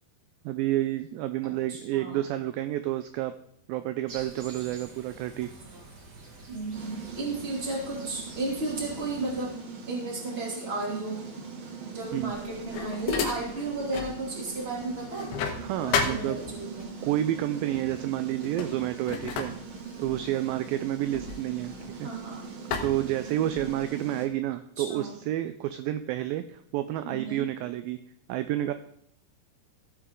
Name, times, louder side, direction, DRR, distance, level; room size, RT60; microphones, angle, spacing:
voice 1, 0.4-3.3 3.7-5.5 12.1-12.3 15.6-16.4 17.0-19.5 20.0-21.7 22.0-22.1 22.8-28.0 28.3-28.7, right 13 dB, 85° right, 10 dB, 2.1 m, -30 dB
voice 2, 1.4-2.2 6.5-9.6 9.9-11.3 11.9-15.3 15.8-17.0 22.0-22.5 24.8-25.1 27.0-27.5, right 2 dB, 20° right, -2 dB, 2.4 m, -34 dB
sound 1, 4.1-9.4, right 3 dB, 45° right, 1.4 m, -47 dB
sound 2, 6.7-24.3, right 5 dB, 60° right, 3.5 m, -41 dB
sound 3, 12.2-14.2 14.6-16.9 17.7-18.0 18.3-22.2 22.7-23.8, left 6 dB, 75° left, 3.0 m, -34 dB
15.5 x 8.3 x 3.7 m, 0.71 s
omnidirectional pair, 4.6 m